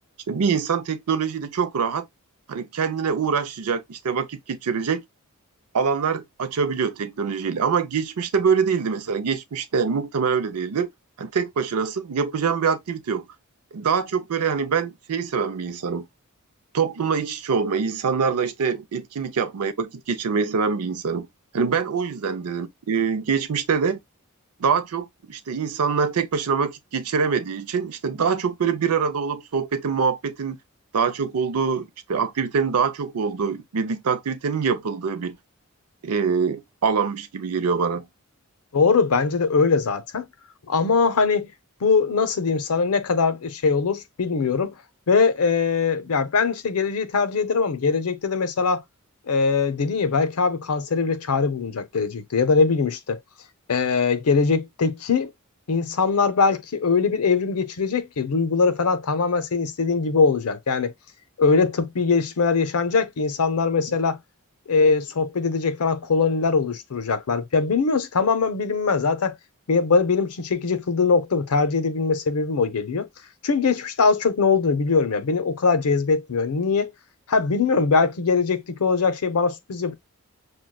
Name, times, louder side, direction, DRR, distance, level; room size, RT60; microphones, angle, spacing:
voice 1, 0.3-2.0 2.5-5.0 5.7-10.9 11.2-13.2 13.7-16.1 16.7-21.3 21.5-24.0 24.6-30.6 30.9-35.4 36.0-38.0, right 6 dB, 85° right, 0.5 m, -24 dB
voice 2, 38.7-40.3 40.7-41.5 41.8-44.7 45.1-48.8 49.3-53.2 53.7-55.3 55.7-60.9 61.4-64.2 64.7-69.3 69.7-73.1 73.4-76.9 77.3-79.9, left 4 dB, 80° left, 0.6 m, -21 dB
6.1 x 2.2 x 2.2 m
head